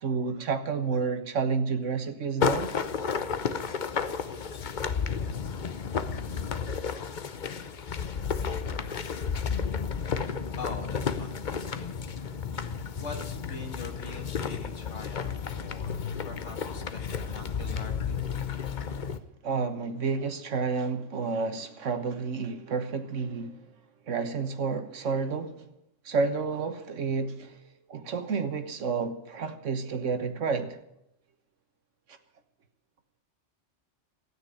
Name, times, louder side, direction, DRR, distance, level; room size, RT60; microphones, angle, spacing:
voice 1, 0.0-2.7 6.5-6.6 8.4-8.8 19.4-23.6 24.1-25.6 26.0-30.8, right 5 dB, 75° right, 1.6 m, -30 dB
sound 1, 2.4-19.2, left 6 dB, 45° left, 0.8 m, -32 dB
voice 2, 10.6-11.9 12.8-17.0 17.3-18.4, left 3 dB, 70° left, 2.3 m, -43 dB
13.5 x 9.3 x 10.0 m
omnidirectional pair, 1.3 m